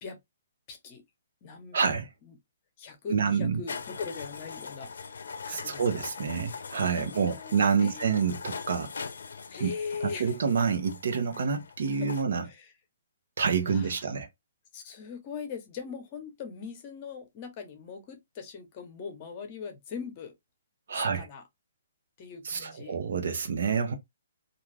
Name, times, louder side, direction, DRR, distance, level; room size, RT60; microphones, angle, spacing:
voice 1, 0.7-1.0 1.4-1.8 2.2-2.4 2.8-4.9 5.2-5.8 7.0-7.5 7.8-8.2 9.5-10.3 12.0-12.1 12.4-12.7 13.7-14.1 14.7-20.3 20.9-21.4 22.2-23.0, left 6 dB, 30° left, 0.8 m, -40 dB
voice 2, 1.7-2.1 3.1-3.6 5.5-8.9 9.6-9.7 10.0-12.4 13.4-14.3 20.9-21.3 22.4-23.9, right 6 dB, 65° right, 0.8 m, -28 dB
sound 1, 3.7-12.2, left 5 dB, 80° left, 0.5 m, -41 dB
2.4 x 2.4 x 3.2 m
hypercardioid pair, 155°, 0 cm